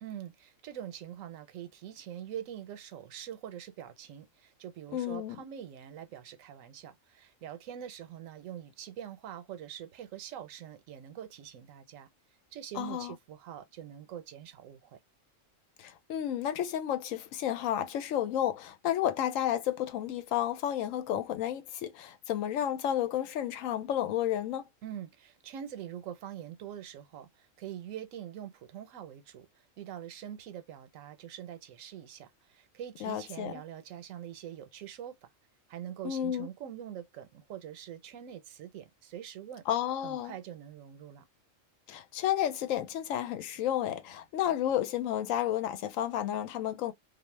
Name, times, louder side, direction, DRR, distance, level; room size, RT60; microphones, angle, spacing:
voice 1, 0.0-12.1 12.5-15.0 24.8-35.3 35.7-39.6 40.0-41.3, right 10 dB, 80° right, 1.0 m, -44 dB
voice 2, 4.9-5.4 12.8-13.1 15.8-24.7 33.0-33.5 36.0-36.5 39.7-40.3 41.9-46.9, left 11 dB, 80° left, 1.0 m, -31 dB
2.4 x 2.1 x 3.1 m
omnidirectional pair, 1.4 m